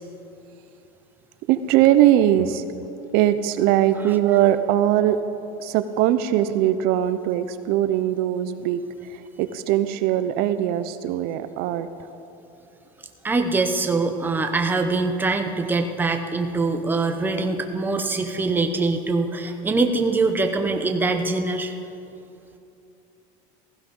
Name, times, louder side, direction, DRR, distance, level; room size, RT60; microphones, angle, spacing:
voice 1, 1.5-2.6 3.1-5.2 5.6-11.9, right 12 dB, 60° right, 11 dB, 0.7 m, -21 dB
voice 2, 13.2-21.7, right 3 dB, 10° right, 5 dB, 0.9 m, -23 dB
16.0 x 15.0 x 5.4 m, 2.8 s
cardioid pair, 145°, 18 cm